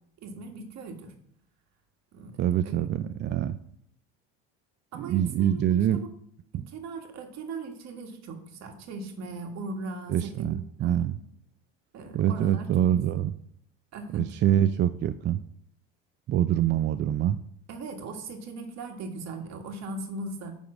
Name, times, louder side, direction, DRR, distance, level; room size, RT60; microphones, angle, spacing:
voice 1, 0.2-1.1 2.1-2.7 4.9-6.1 6.5-10.5 10.8-11.0 11.9-12.7 13.9-14.2 17.7-20.5, right 3 dB, 55° right, 4 dB, 1.8 m, -39 dB
voice 2, 2.4-3.6 4.9-6.0 10.1-11.2 12.1-13.3 14.1-15.4 16.3-17.4, right 11 dB, 35° right, 11 dB, 0.4 m, -25 dB
9.7 x 3.6 x 6.1 m, 0.67 s
supercardioid pair, 90°, 32 cm